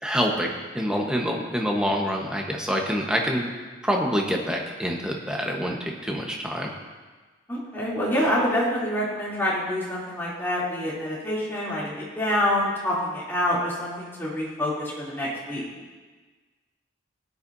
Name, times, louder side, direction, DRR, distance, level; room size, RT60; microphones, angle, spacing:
voice 1, 0.0-3.5 3.8-6.7, equal, 5° right, 0 dB, 1.1 m, -26 dB
voice 2, 7.5-15.6, left 1 dB, 10° left, -8 dB, 3.0 m, -26 dB
17.0 x 10.0 x 2.7 m, 1.4 s
head